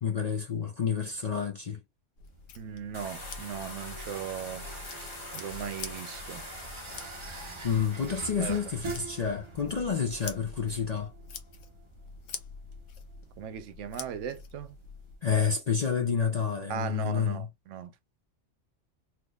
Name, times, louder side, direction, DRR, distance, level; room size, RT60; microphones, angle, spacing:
voice 1, 0.0-1.8 7.6-11.1 15.2-17.5, left 6 dB, 55° left, 0.4 m, -29 dB
sound 1, 2.2-15.2, left 5 dB, 80° left, 1.1 m, -46 dB
sound 2, 2.3-15.6, right 4 dB, 40° right, 0.4 m, -47 dB
voice 2, 2.6-4.6 5.3-6.4 8.3-8.6 13.4-14.7 16.7-17.9, right 8 dB, 80° right, 0.9 m, -38 dB
sound 3, 2.9-11.0, left 1 dB, 25° left, 1.2 m, -45 dB
3.5 x 2.8 x 2.2 m
omnidirectional pair, 1.3 m